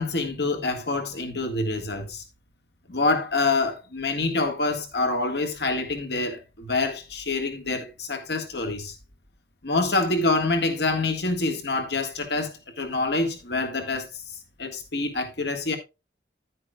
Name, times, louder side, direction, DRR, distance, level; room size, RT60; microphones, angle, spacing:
voice 1, 0.0-2.2 2.9-9.0 9.6-14.1 14.6-15.8, left 3 dB, 70° left, 1.7 m, -26 dB
10.0 x 9.7 x 2.4 m
head